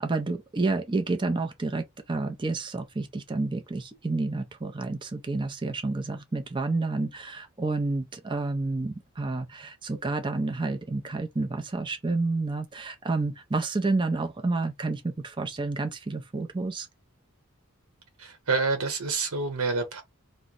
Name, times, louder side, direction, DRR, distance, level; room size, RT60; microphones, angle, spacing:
voice 1, 0.0-16.9, right 3 dB, 20° right, 0.5 m, -29 dB
voice 2, 18.2-20.0, right 4 dB, 75° right, 0.9 m, -28 dB
3.0 x 2.1 x 3.8 m
head